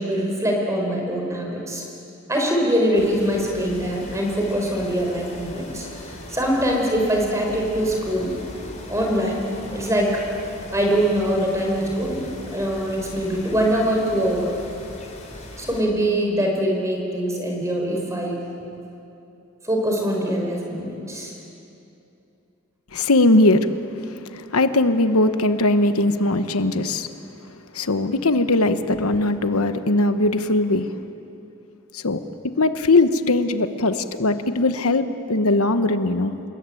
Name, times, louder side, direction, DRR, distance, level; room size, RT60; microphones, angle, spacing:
voice 1, 0.0-1.8 2.3-8.3 8.9-9.4 9.7-10.2 10.7-14.5 15.6-18.4 19.6-21.3, equal, 15° right, 0 dB, 5.1 m, -23 dB
sound 1, 2.9-15.8, left 1 dB, 30° left, 4.4 m, -39 dB
voice 2, 22.9-23.7 24.0-27.1 27.7-30.9 31.9-32.2 32.6-36.3, left 2 dB, 85° left, 10 dB, 1.1 m, -20 dB
29.0 x 21.5 x 9.1 m, 2.8 s
head